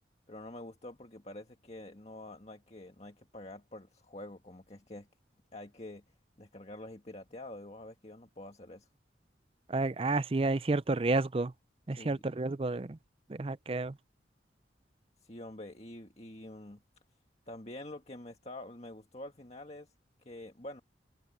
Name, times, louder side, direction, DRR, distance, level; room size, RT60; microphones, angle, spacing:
voice 1, 0.3-5.1 5.5-6.0 6.4-8.9 11.9-12.2 15.2-16.8 17.5-19.9 20.2-20.8, left 1 dB, 35° left, 1.8 m, -47 dB
voice 2, 9.7-11.5 11.9-13.0 13.3-13.9, right 2 dB, 30° right, 0.5 m, -30 dB
head